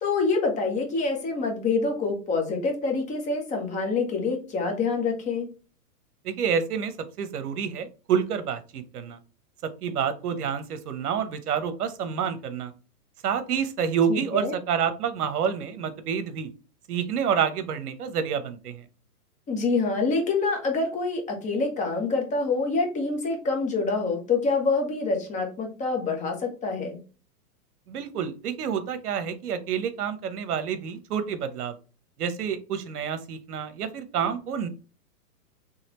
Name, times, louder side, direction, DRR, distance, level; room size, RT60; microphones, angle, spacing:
voice 1, 0.0-5.5 14.1-14.5 19.5-27.0, left 3 dB, 15° left, 2 dB, 1.0 m, -26 dB
voice 2, 6.2-9.2 9.6-12.7 13.2-16.5 16.9-18.8 27.9-31.7 32.2-34.7, right 7 dB, 70° right, 10 dB, 1.0 m, -28 dB
4.1 x 3.2 x 3.0 m, 0.35 s
hypercardioid pair, 140°, 47 cm